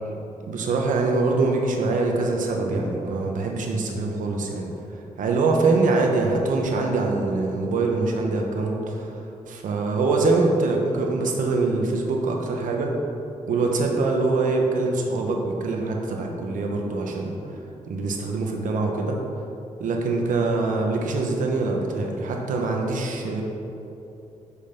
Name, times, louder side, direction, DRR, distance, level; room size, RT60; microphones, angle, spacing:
voice 1, 0.5-4.7 5.2-9.1 9.5-12.9 13.5-17.4 17.9-19.2 19.8-23.4, right 3 dB, 90° right, 1 dB, 1.0 m, -24 dB
6.4 x 5.6 x 5.2 m, 2.9 s
wide cardioid pair, 170°, 13 cm